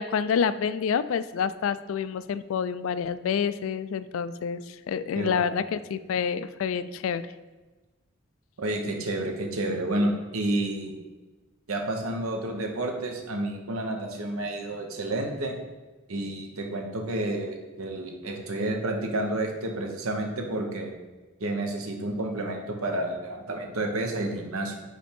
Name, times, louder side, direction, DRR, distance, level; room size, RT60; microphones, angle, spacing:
voice 1, 0.0-7.3, left 7 dB, 70° left, 15 dB, 0.3 m, -28 dB
voice 2, 5.1-5.5 8.6-10.9 11.7-15.6 16.1-20.9 21.4-24.8, right 1 dB, 85° right, 3 dB, 1.0 m, -30 dB
5.1 x 4.4 x 5.2 m, 1.2 s
head